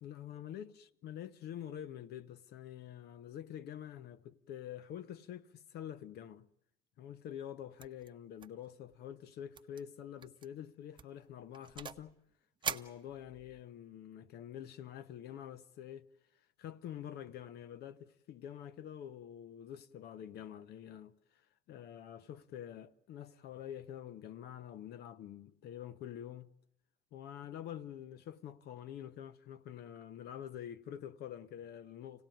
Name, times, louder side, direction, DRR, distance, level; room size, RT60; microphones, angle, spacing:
voice 1, 0.0-6.5 7.0-12.1 12.7-16.1 16.6-21.4 21.7-26.5 27.1-32.3, left 10 dB, 75° left, 0.9 m, -47 dB
sound 1, 7.8-8.1 8.4-8.7 8.9-9.0 9.5-9.8 10.2-10.5 11.0-12.1 12.6-13.6, right 6 dB, 30° right, 0.8 m, -43 dB
26.0 x 17.5 x 9.2 m
cardioid pair, 110°, 17 cm